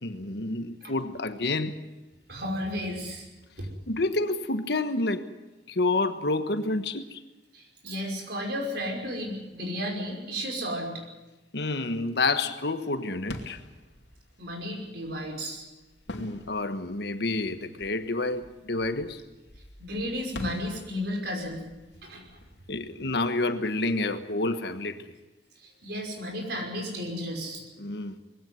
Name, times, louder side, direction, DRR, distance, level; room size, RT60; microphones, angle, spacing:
voice 1, 0.0-1.9 3.9-5.3 5.7-7.2 11.5-13.6 16.1-19.2 22.7-25.2 27.8-28.2, left 2 dB, 65° left, 1.3 m, -29 dB
voice 2, 2.3-3.3 3.6-3.7 7.5-11.0 14.4-15.6 19.8-21.6 22.0-22.2 25.6-27.6, equal, 60° right, 5.5 m, -33 dB
sound 1, 13.3-23.8, left 1 dB, 85° left, 2.7 m, -46 dB
21.5 x 16.5 x 9.5 m
head